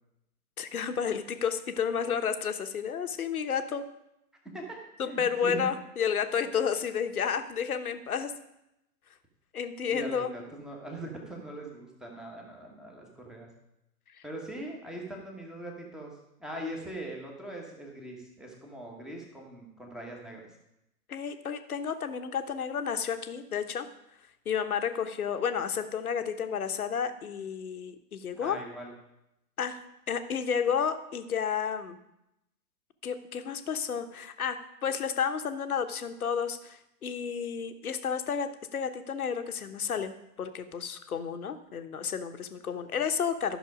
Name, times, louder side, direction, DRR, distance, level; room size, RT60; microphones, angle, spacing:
voice 1, 0.6-3.8 5.0-8.3 9.5-10.3 21.1-23.9 24.4-28.6 29.6-29.8 30.1-32.0 33.0-43.6, left 7 dB, 60° left, 9 dB, 1.1 m, -31 dB
voice 2, 5.1-5.7 9.9-13.5 14.2-16.1 16.4-20.4 28.3-28.9, right 1 dB, ahead, -1 dB, 1.2 m, -41 dB
12.5 x 6.1 x 5.1 m, 0.86 s
figure-of-eight pair, 125°, 49 cm